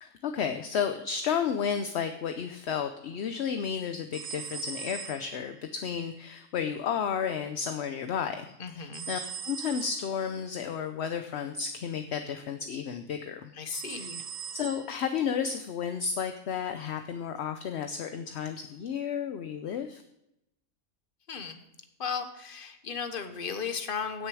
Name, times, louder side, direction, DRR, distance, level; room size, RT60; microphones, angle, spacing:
voice 1, 0.0-9.2 9.4-13.5 13.9-14.1 14.5-20.0, left 7 dB, 60° left, 7 dB, 0.8 m, -32 dB
sound 1, 4.1-5.7 8.9-10.2 13.7-15.1, right 7 dB, 65° right, 0.4 m, -40 dB
voice 2, 8.6-9.1 13.6-14.2 21.3-21.6 22.0-24.3, left 6 dB, 40° left, 8 dB, 1.1 m, -35 dB
16.5 x 6.5 x 4.7 m, 0.87 s
omnidirectional pair, 1.5 m